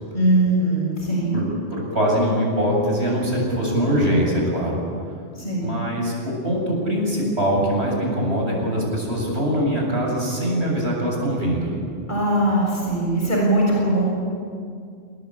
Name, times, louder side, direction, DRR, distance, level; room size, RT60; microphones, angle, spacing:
voice 1, 0.1-1.4 5.4-5.7 12.1-14.0, right 1 dB, 40° left, -3 dB, 7.1 m, -20 dB
voice 2, 1.3-4.8 5.6-11.7, equal, 65° right, -1 dB, 8.0 m, -22 dB
28.0 x 20.0 x 8.9 m, 2.3 s
omnidirectional pair, 1.2 m